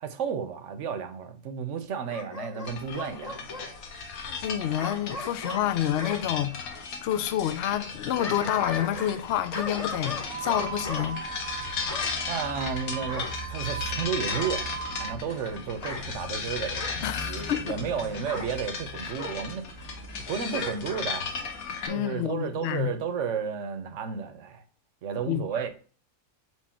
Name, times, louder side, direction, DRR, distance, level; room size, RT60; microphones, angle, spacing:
voice 1, 0.0-3.7 12.3-19.6 20.3-21.3 21.9-24.6 25.0-25.7, right 6 dB, 60° right, 1.0 m, -33 dB
Bark / Growling, 2.1-3.7 4.8-6.2 7.9-9.2 9.5-11.1 11.9-12.2 13.1-13.9 14.3-14.6 15.7-16.1 16.8-17.0 18.3-18.5 19.2-19.4 20.5-21.1 21.4-21.5, left 3 dB, 30° left, 0.9 m, -37 dB
sound 1, 2.6-21.9, left 4 dB, 65° left, 1.4 m, -36 dB
voice 2, 4.4-11.2 17.0-17.8 19.0-19.1 21.9-22.9 25.3-25.4, left 11 dB, 90° left, 0.5 m, -28 dB
sound 2, 10.2-15.2, right 9 dB, 75° right, 1.1 m, -39 dB
4.6 x 4.0 x 5.6 m
omnidirectional pair, 1.7 m